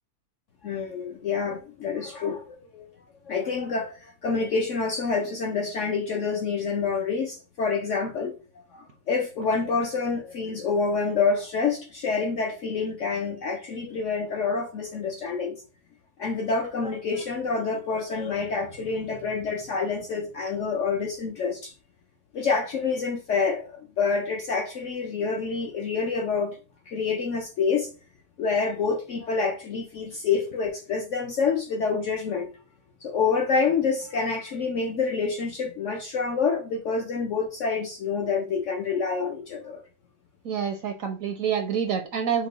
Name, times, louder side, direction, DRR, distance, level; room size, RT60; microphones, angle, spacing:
voice 1, 0.6-2.9 3.3-8.4 8.7-15.6 16.2-21.7 22.3-26.6 26.9-27.9 28.4-32.5 33.0-39.8, left 5 dB, 65° left, 0.8 m, -27 dB
voice 2, 40.4-42.5, right 7 dB, 65° right, 0.9 m, -27 dB
6.0 x 2.2 x 4.0 m
omnidirectional pair, 1.9 m